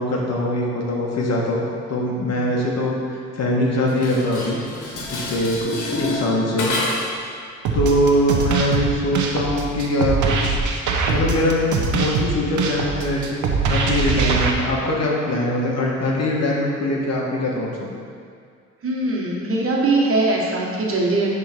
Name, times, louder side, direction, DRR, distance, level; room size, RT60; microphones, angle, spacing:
voice 1, 0.0-1.6 1.9-4.6 5.1-6.7 7.7-10.6 11.1-17.9, left 1 dB, 60° left, -2 dB, 1.6 m, -22 dB
Dishes pots and pans, 3.9-7.3, left 2 dB, 85° left, 1.6 m, -28 dB
sound 1, 7.6-14.5, right 4 dB, 80° right, 0.9 m, -22 dB
voice 2, 18.8-21.3, right 2 dB, 45° right, -3 dB, 1.6 m, -21 dB
10.5 x 3.7 x 4.5 m, 2.3 s
cardioid pair, 90°, 30 cm